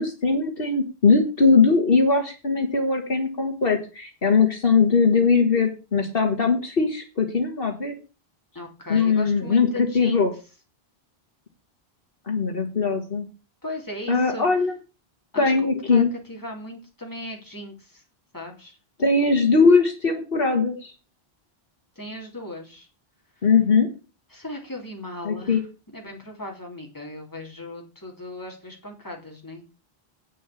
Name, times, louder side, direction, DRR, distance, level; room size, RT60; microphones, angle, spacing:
voice 1, 0.0-8.0 8.9-9.7 9.9-10.3 12.3-13.3 14.1-14.8 15.4-16.1 19.0-20.9 23.4-23.9 25.2-25.6, left 4 dB, 65° left, 4 dB, 1.9 m, -20 dB
voice 2, 8.5-10.3 13.6-14.5 15.3-15.5 15.9-16.0 16.3-18.0 18.3-18.8 22.0-22.9 24.3-25.6 25.9-29.6, left 1 dB, 20° left, 0 dB, 3.0 m, -37 dB
8.7 x 6.3 x 8.3 m, 0.33 s
omnidirectional pair, 1.0 m